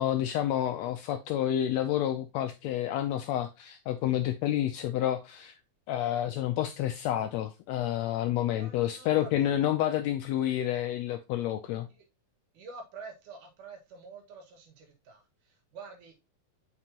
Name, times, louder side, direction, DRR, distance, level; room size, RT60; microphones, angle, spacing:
voice 1, 0.0-5.5 5.9-11.9, left 12 dB, 80° left, 1.5 m, -29 dB
voice 2, 8.5-9.5 9.8-10.0 11.9-12.0 12.5-16.1, right 4 dB, 85° right, 3.1 m, -48 dB
7.9 x 5.2 x 2.8 m
omnidirectional pair, 3.5 m